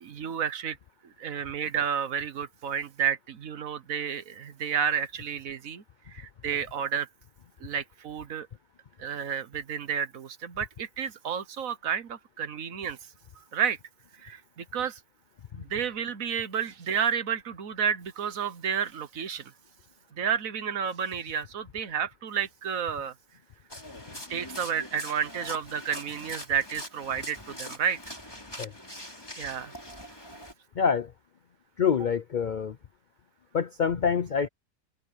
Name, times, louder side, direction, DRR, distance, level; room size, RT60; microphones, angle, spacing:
voice 1, 0.0-0.8 1.0-5.8 6.1-7.1 7.6-8.5 9.0-13.0 13.5-13.8 14.2-15.0 15.5-19.5 20.2-23.1 24.3-28.1 29.4-29.7, right 8 dB, 60° right, 1.4 m, -31 dB
sound 1, 23.7-30.5, left 1 dB, 15° left, 3.7 m, -43 dB
voice 2, 30.8-31.1 31.8-32.8 33.5-34.5, left 6 dB, 65° left, 0.4 m, -26 dB
omnidirectional pair, 1.6 m